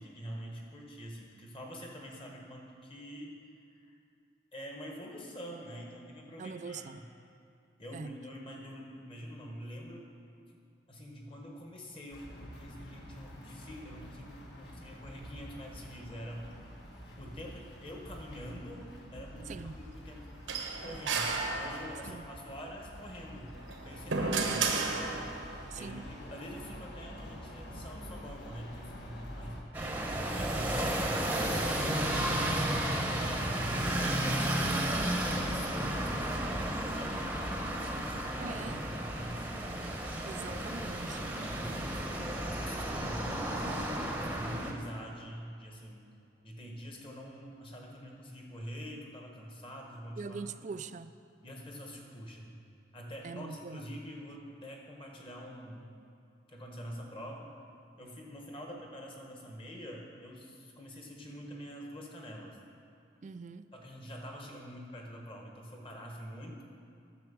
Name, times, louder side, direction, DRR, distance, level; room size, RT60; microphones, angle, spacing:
voice 1, 0.0-3.4 4.5-7.1 7.8-10.1 10.9-16.5 17.2-20.4 20.8-25.1 25.7-29.6 30.2-34.7 35.2-37.3 37.9-39.8 40.5-43.9 44.2-46.1 46.4-50.4 51.4-52.6 52.9-55.9 56.5-57.5 58.0-62.6 63.7-66.6, equal, 30° left, 0 dB, 1.5 m, -46 dB
voice 2, 6.4-7.0 7.9-8.1 19.5-19.8 22.0-22.3 25.7-26.0 38.4-38.8 40.3-41.3 50.2-51.1 53.2-53.8 63.2-63.7, right 5 dB, 40° right, 12 dB, 0.3 m, -42 dB
sound 1, 12.1-29.6, equal, 60° left, 1.7 m, -48 dB
sound 2, 20.5-22.2 23.6-25.6, right 4 dB, 90° right, 1.1 m, -33 dB
sound 3, 29.7-44.7, right 1 dB, 10° right, 0.9 m, -33 dB
10.5 x 6.9 x 7.1 m, 2.5 s
head